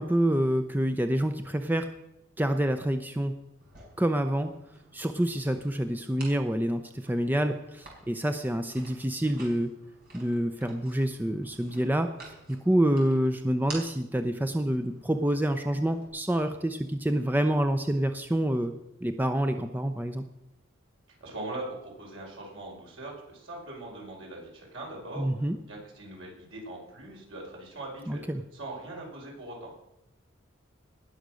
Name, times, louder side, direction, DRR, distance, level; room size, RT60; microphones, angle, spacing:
voice 1, 0.0-1.9 2.4-3.3 4.0-4.5 4.9-9.7 10.1-12.1 12.5-18.7 19.0-20.2 25.2-25.6 28.1-28.4, right 1 dB, 10° right, 7 dB, 0.6 m, -27 dB
sound 1, 3.6-16.1, right 3 dB, 50° right, 5.0 m, -51 dB
voice 2, 21.2-25.3 25.7-28.2 28.5-29.8, right 2 dB, 80° right, -2 dB, 5.1 m, -41 dB
19.0 x 6.6 x 6.3 m, 0.89 s
head